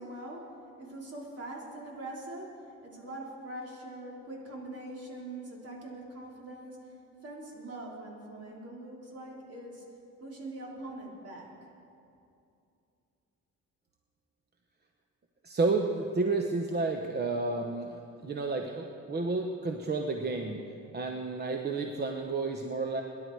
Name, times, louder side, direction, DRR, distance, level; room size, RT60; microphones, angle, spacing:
voice 1, 0.0-9.9 10.2-11.5, right 1 dB, 50° right, -2 dB, 3.6 m, -43 dB
voice 2, 15.4-20.6 20.9-23.0, right 3 dB, 35° right, 3 dB, 1.0 m, -31 dB
22.5 x 11.0 x 4.7 m, 2.6 s
cardioid pair, 90°, 30 cm